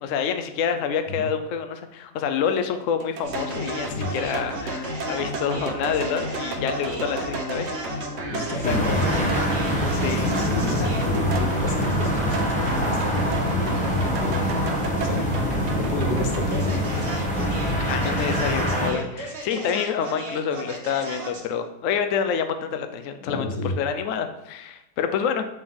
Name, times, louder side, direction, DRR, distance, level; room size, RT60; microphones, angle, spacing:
voice 1, 0.0-8.0 8.7-9.3 9.9-10.3 10.8-10.9 17.7-25.4, left 7 dB, 90° left, 8 dB, 0.6 m, -27 dB
sound 1, 3.0-12.7 13.0-15.1, right 5 dB, 70° right, 1.2 m, -36 dB
sound 2, 3.2-21.5, equal, 40° right, 1.3 m, -33 dB
voice 2, 8.3-9.2 10.3-14.4 15.0-15.2 15.6-16.9 18.0-18.2 23.3-23.7, left 2 dB, 70° left, 2 dB, 1.6 m, -29 dB
sound 3, 8.6-18.9, equal, 5° left, 0.7 m, -25 dB
6.4 x 4.4 x 3.7 m, 0.91 s
omnidirectional pair, 2.0 m